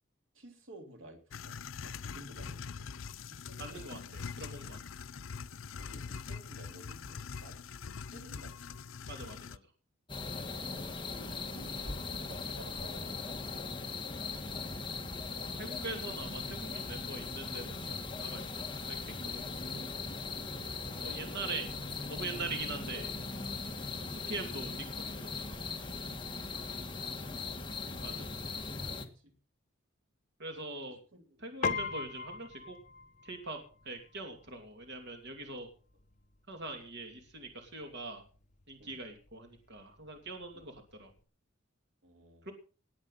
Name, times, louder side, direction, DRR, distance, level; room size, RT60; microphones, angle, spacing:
voice 1, 0.3-4.2 5.3-5.4 5.7-7.6 8.1-8.7 10.5-13.4 20.5-20.8 26.4-29.3 30.8-31.8 38.8-39.0 40.5-40.7 42.0-42.5, right 1 dB, 80° right, 4 dB, 3.2 m, -55 dB
sound 1, 1.3-9.6, left 5 dB, 85° left, 0.6 m, -43 dB
voice 2, 3.6-4.8 9.1-9.6 15.6-19.9 21.0-21.7 22.1-23.1 24.1-25.6 28.0-28.4 30.4-31.0 31.4-32.8 33.2-33.6 33.8-35.7 36.5-38.2 38.7-41.1 42.5-42.6, right 3 dB, 60° right, 4 dB, 2.8 m, -43 dB
sound 2, 10.1-29.1, left 4 dB, 25° left, 1.8 m, -39 dB
Piano, 31.6-41.2, left 4 dB, 40° left, 1.0 m, -43 dB
19.5 x 8.9 x 5.7 m, 0.39 s
head